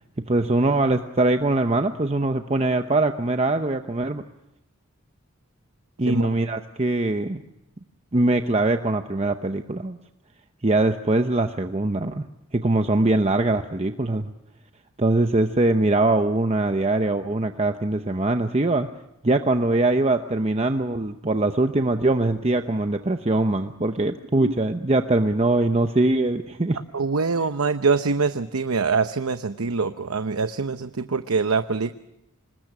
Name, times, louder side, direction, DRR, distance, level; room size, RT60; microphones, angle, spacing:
voice 1, 0.3-4.2 6.0-7.4 8.1-10.0 10.6-12.3 12.5-14.3 15.0-18.9 19.2-26.8, right 2 dB, 30° right, 7 dB, 0.8 m, -22 dB
voice 2, 26.9-31.9, right 4 dB, 90° right, 9 dB, 0.9 m, -24 dB
26.5 x 20.5 x 6.1 m, 0.90 s
head